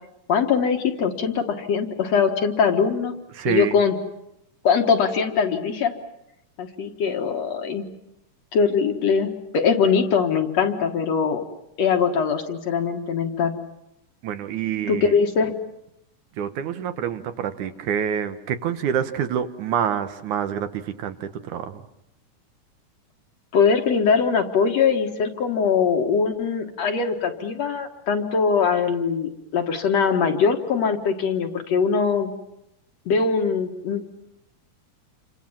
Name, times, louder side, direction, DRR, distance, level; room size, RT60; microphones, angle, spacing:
voice 1, 0.3-3.1 3.5-4.0 4.6-5.9 6.6-7.8 8.5-11.4 11.8-13.5 14.9-15.5 23.5-32.3 33.1-34.0, left 6 dB, 55° left, 5 dB, 2.7 m, -22 dB
voice 2, 3.3-3.8 14.2-15.2 16.4-21.8, right 8 dB, 70° right, 9 dB, 2.5 m, -27 dB
29.0 x 25.5 x 7.3 m, 0.83 s
omnidirectional pair, 3.7 m